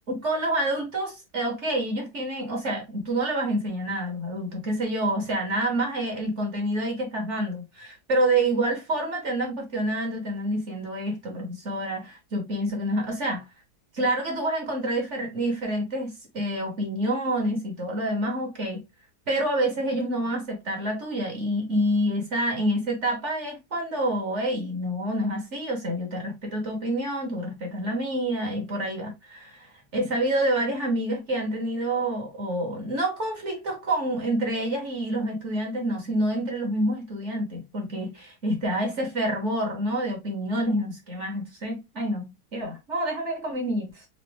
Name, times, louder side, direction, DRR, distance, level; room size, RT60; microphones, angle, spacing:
voice 1, 0.1-13.4 13.9-18.8 19.3-44.1, right 1 dB, 45° right, 1.5 m, -28 dB
4.0 x 2.8 x 3.3 m
omnidirectional pair, 1.8 m